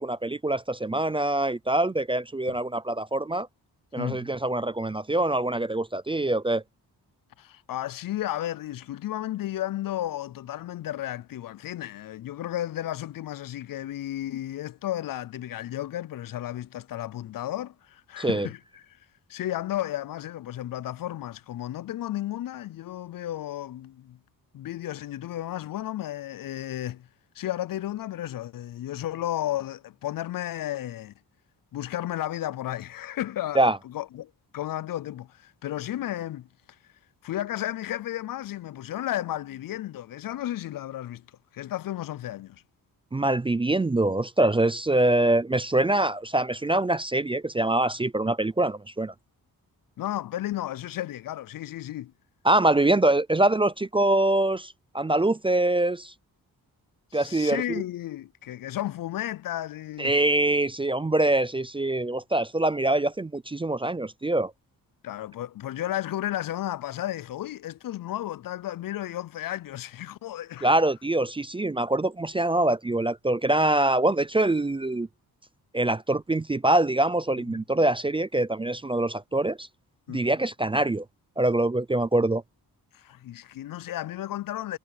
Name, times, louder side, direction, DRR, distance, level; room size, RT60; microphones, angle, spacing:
voice 1, 0.0-3.5 3.9-6.6 18.2-18.5 33.6-33.8 43.1-49.1 52.4-56.1 57.1-57.8 60.0-64.5 70.6-75.1 75.7-79.7 80.1-81.0 81.4-82.4, right 2 dB, 15° right, 0.4 m, -24 dB
voice 2, 4.0-4.3 7.4-19.0 19.3-24.2 24.5-27.1 27.4-31.1 31.7-36.5 37.2-41.3 41.5-42.6 50.0-52.1 57.1-60.2 65.0-70.7 77.5-77.6 80.1-80.3 82.9-84.8, left 13 dB, 60° left, 0.5 m, -33 dB
wide cardioid pair, 140°, 38 cm